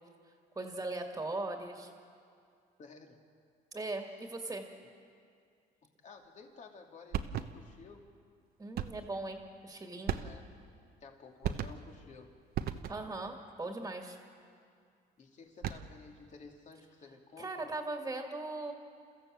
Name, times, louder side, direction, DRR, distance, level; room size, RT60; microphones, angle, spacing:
voice 1, 0.6-1.9 3.7-4.6 8.6-10.2 12.9-14.2 17.4-18.7, right 2 dB, 15° right, 3 dB, 2.1 m, -39 dB
voice 2, 2.8-3.2 4.1-4.3 6.0-8.1 10.1-10.4 11.0-12.3 15.2-17.7, left 4 dB, 45° left, 2 dB, 2.6 m, -53 dB
sound 1, 7.1-7.8 8.8-9.2 10.1-10.7 11.4-12.0 12.5-13.2 15.4-16.1, right 9 dB, 65° right, 1.0 m, -37 dB
29.5 x 14.5 x 7.6 m, 2.3 s
cardioid pair, 110°, 17 cm